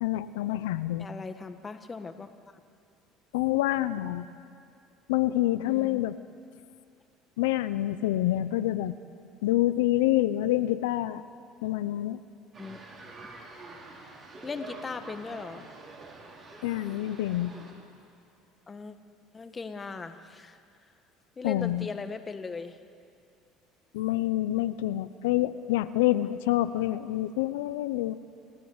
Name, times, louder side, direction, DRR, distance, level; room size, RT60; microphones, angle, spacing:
voice 1, 0.0-1.1 3.3-4.3 5.1-6.1 7.4-8.9 9.4-11.2 11.6-12.2 16.6-17.5 21.4-21.9 23.9-28.1, left 15 dB, 85° left, 13 dB, 0.6 m, -27 dB
voice 2, 1.0-2.3 5.6-6.0 12.6-12.8 13.1-13.3 14.4-15.6 18.7-19.0 19.3-20.6 21.4-22.8, left 4 dB, 25° left, 8 dB, 1.5 m, -38 dB
sound 1, 12.5-17.7, right 3 dB, 40° right, 5.6 m, -46 dB
29.5 x 11.5 x 8.1 m, 2.5 s
supercardioid pair, 90°, 0 cm